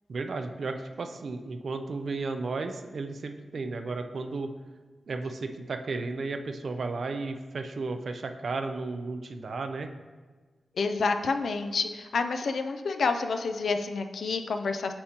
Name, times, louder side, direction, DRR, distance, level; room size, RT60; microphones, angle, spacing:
voice 1, 0.1-4.5 5.1-9.9, right 3 dB, 65° right, 7 dB, 0.4 m, -34 dB
voice 2, 10.8-14.9, left 4 dB, 80° left, 7 dB, 0.4 m, -29 dB
8.6 x 4.3 x 2.9 m, 1.4 s
wide cardioid pair, 135°, 0 cm